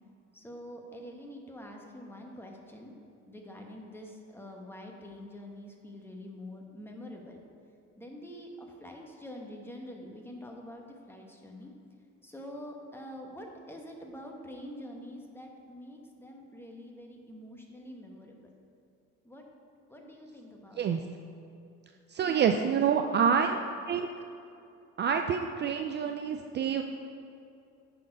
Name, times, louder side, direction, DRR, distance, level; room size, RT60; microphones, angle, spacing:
voice 1, 0.3-2.9 3.3-7.4 8.0-11.7 12.2-18.4 19.2-19.4 19.9-20.8 22.2-23.6, equal, 10° left, 1 dB, 1.1 m, -46 dB
voice 2, 22.1-23.6 23.9-24.1 25.0-26.8, right 7 dB, 40° right, 5 dB, 0.4 m, -27 dB
9.0 x 4.3 x 5.4 m, 2.6 s
cardioid pair, 110°, 29 cm